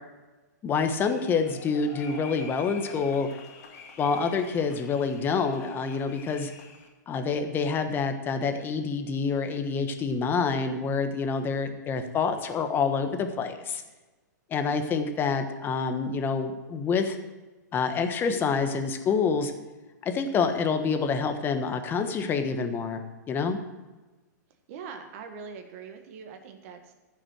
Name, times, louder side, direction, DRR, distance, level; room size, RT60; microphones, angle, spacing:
voice 1, 0.6-3.3 4.0-6.5 7.1-13.8 14.5-17.2 17.7-19.5 20.0-23.0 23.3-23.6, left 5 dB, 20° left, 7 dB, 1.2 m, -27 dB
sound 1, 1.0-6.9, left 5 dB, 55° left, 2.3 m, -46 dB
voice 2, 24.7-26.9, right 5 dB, 45° right, 5 dB, 1.6 m, -42 dB
14.5 x 6.2 x 6.4 m, 1.2 s
hypercardioid pair, 130°, 10 cm